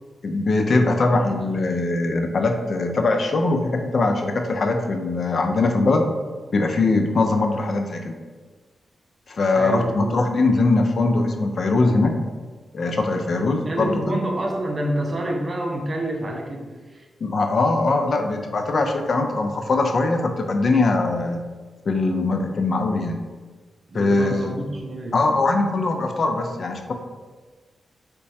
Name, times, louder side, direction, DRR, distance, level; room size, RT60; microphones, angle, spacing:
voice 1, 0.2-6.0 6.5-8.2 9.3-12.1 12.7-14.0 17.2-21.4 21.9-23.3 23.9-24.6 25.1-26.9, left 3 dB, 55° left, 4 dB, 0.3 m, -21 dB
voice 2, 9.5-10.2 13.4-17.1 23.9-25.2, right 1 dB, 40° right, 1 dB, 0.5 m, -28 dB
3.9 x 2.2 x 2.6 m, 1.4 s
cardioid pair, 75°, 0 cm